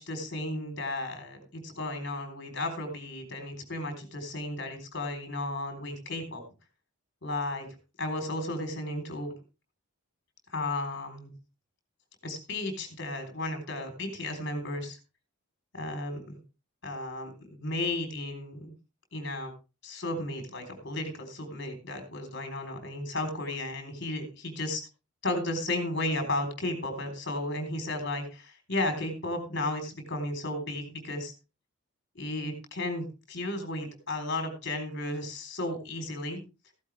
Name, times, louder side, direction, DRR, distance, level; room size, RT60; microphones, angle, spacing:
voice 1, 0.0-6.4 7.2-7.7 8.0-9.3 10.5-11.3 12.2-15.0 15.7-16.4 16.8-18.7 19.1-19.5 19.8-24.8 25.2-31.3 32.1-36.4, left 2 dB, 50° left, 5 dB, 3.8 m, -34 dB
14.5 x 12.0 x 3.4 m, 0.30 s
head